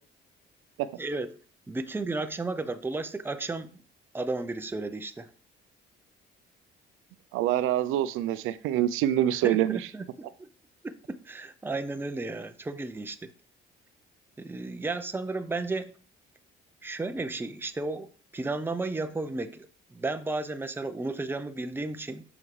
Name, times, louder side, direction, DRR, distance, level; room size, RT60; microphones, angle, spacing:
voice 1, 1.0-1.3 1.7-3.8 4.1-5.3 9.4-10.1 10.4-10.5 10.8-13.3 14.4-15.9 16.8-22.2, right 3 dB, 10° right, 0.6 m, -33 dB
voice 2, 7.3-9.8, right 12 dB, 90° right, 0.5 m, -25 dB
7.0 x 5.9 x 3.3 m
cardioid pair, 90°, 21 cm